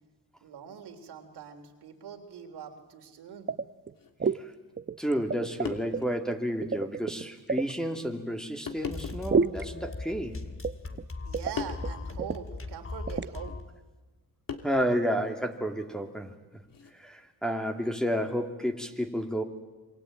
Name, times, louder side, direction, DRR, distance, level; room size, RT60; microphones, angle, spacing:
voice 1, 0.4-3.5 11.2-13.5, right 8 dB, 85° right, 4 dB, 3.4 m, -43 dB
sound 1, 3.5-3.9 4.2-4.4 4.8-6.0 6.6-7.7 9.3-9.6 10.6-11.0 11.3-11.5 11.8-11.9 12.2-12.4 13.1-13.3, right 5 dB, 30° right, 0.8 m, -29 dB
sound 2, 3.9-4.1 5.2-5.3 5.7-6.2 6.7-6.8 7.7-7.9 8.7-9.4 10.2-10.9 11.6-11.9 13.5-13.6 14.5-15.1 16.6-16.9, left 6 dB, 60° left, 2.9 m, -39 dB
voice 2, 5.0-10.4 14.6-16.6 16.9-19.4, equal, ahead, 3 dB, 2.6 m, -31 dB
sound 3, 8.9-13.7, left 3 dB, 35° left, 2.5 m, -39 dB
27.5 x 23.0 x 9.0 m, 1.2 s
cardioid pair, 75°, 39 cm